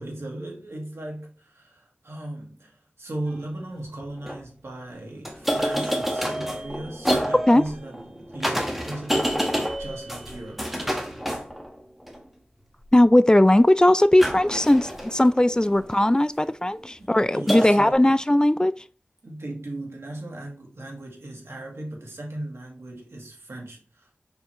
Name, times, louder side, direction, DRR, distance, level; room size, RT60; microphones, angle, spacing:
voice 1, 0.0-10.7 17.0-18.1 19.2-24.2, right 1 dB, 85° right, 1.9 m, -37 dB
sound 1, 3.3-3.4 4.0-4.4 5.2-12.2 14.2-16.1 17.5-17.9, equal, 5° right, 1.4 m, -28 dB
voice 2, 12.9-18.7, left 1 dB, 20° left, 0.4 m, -18 dB
5.9 x 5.5 x 3.1 m
wide cardioid pair, 50°, 4 cm